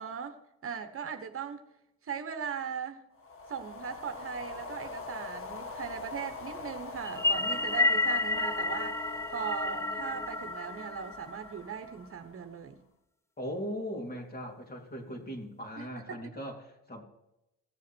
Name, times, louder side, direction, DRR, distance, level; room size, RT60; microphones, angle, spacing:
voice 1, 0.0-1.6 2.0-3.0 3.5-9.0 9.3-12.8 15.8-16.2, right 7 dB, 45° right, 7 dB, 1.1 m, -39 dB
sound 1, 3.2-12.6, left 3 dB, 45° left, 1.3 m, -44 dB
sound 2, 7.0-11.6, left 2 dB, 10° left, 0.6 m, -30 dB
voice 2, 13.4-17.0, equal, 30° left, 1 dB, 3.3 m, -39 dB
17.0 x 7.2 x 4.5 m, 0.89 s
cardioid pair, 90°, 30 cm